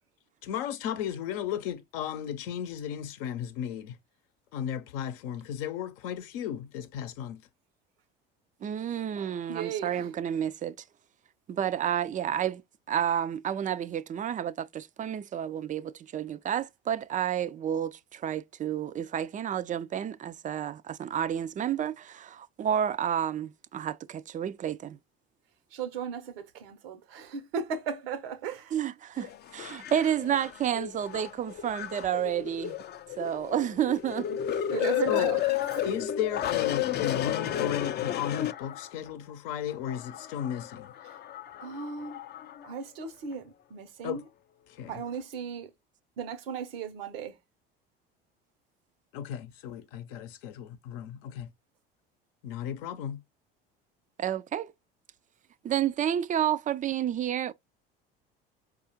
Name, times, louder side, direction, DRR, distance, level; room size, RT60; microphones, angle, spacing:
voice 1, 0.4-4.0 4.5-7.4 35.1-35.3 35.8-40.9 44.0-44.2 44.7-45.0 49.1-51.5 52.4-53.2, left 10 dB, 70° left, 0.7 m, -34 dB
voice 2, 8.6-10.8 11.5-12.6 12.9-25.0 28.7-32.8 33.2-34.3 34.8-35.3 54.2-54.7 55.6-57.5, right 9 dB, 25° right, 0.4 m, -30 dB
voice 3, 9.5-10.1 25.7-28.7 34.7-35.9 41.6-42.2 42.6-44.2 44.9-45.7 46.2-47.4, right 6 dB, 75° right, 0.9 m, -36 dB
sound 1, 29.2-39.1 39.7-42.7 43.3-43.4, left 12 dB, 35° left, 0.5 m, -33 dB
4.7 x 2.4 x 2.9 m
hypercardioid pair, 70°, 29 cm